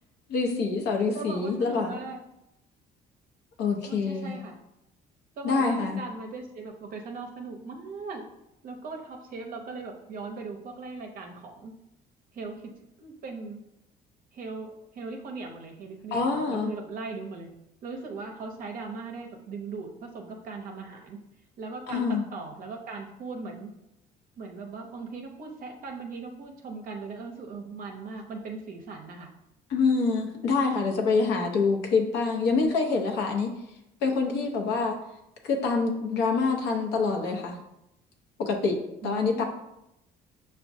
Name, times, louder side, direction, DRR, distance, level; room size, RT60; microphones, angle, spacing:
voice 1, 0.3-2.0 3.6-4.3 5.4-6.0 16.1-16.7 21.9-22.2 29.7-33.5 34.0-35.0 35.4-37.6 38.4-38.8 39.0-39.4, left 4 dB, 85° left, 2 dB, 0.7 m, -26 dB
voice 2, 1.1-2.2 3.8-4.6 5.4-8.2 8.6-11.7 12.3-12.7 13.0-13.6 14.3-17.5 17.8-21.2 21.6-23.7 24.4-29.3 39.0-39.4, right 4 dB, 55° right, 2 dB, 0.5 m, -39 dB
5.8 x 2.2 x 2.6 m, 0.85 s
cardioid pair, 110°, 17 cm